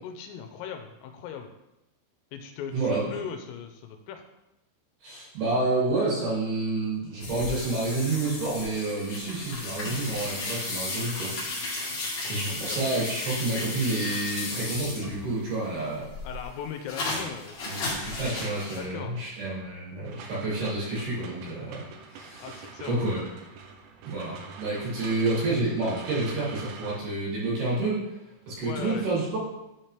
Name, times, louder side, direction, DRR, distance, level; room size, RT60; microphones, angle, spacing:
voice 1, 0.0-1.5 2.3-4.2 12.2-12.9 16.2-17.9 18.8-19.3 22.4-23.0 28.6-29.1, left 7 dB, 85° left, 5 dB, 3.2 m, -39 dB
voice 2, 2.7-3.1 5.0-11.3 11.6-16.1 17.7-21.8 22.1-22.6 22.9-23.2 24.0-28.0 28.5-29.4, right 2 dB, 55° right, -7 dB, 3.9 m, -29 dB
sound 1, 7.2-15.4 15.8-18.8, left 2 dB, 50° left, 2.2 m, -34 dB
sound 2, 20.0-27.0, right 5 dB, 80° right, 2.6 m, -44 dB
12.0 x 4.4 x 3.3 m, 0.92 s
omnidirectional pair, 5.9 m